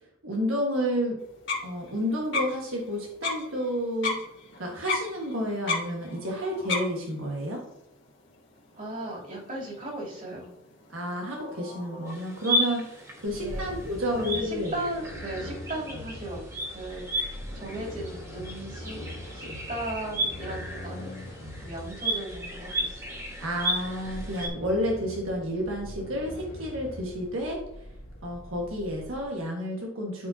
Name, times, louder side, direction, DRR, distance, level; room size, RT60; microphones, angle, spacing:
voice 1, 0.2-1.2 1.6-4.2 4.6-7.6 10.9-14.7 23.4-27.6 28.2-30.3, equal, 85° right, -1 dB, 1.5 m, -30 dB
sound 1, 1.2-14.3, left 3 dB, 60° left, 2.3 m, -37 dB
voice 2, 8.7-10.5 13.3-13.7 14.2-16.4 16.7-19.0 19.3-23.2, right 1 dB, 40° right, -5 dB, 3.1 m, -37 dB
sound 2, 12.1-24.5, equal, 15° right, 1.6 m, -34 dB
sound 3, 13.2-29.2, equal, 80° left, 1.9 m, -42 dB
12.5 x 4.9 x 2.8 m, 0.81 s
head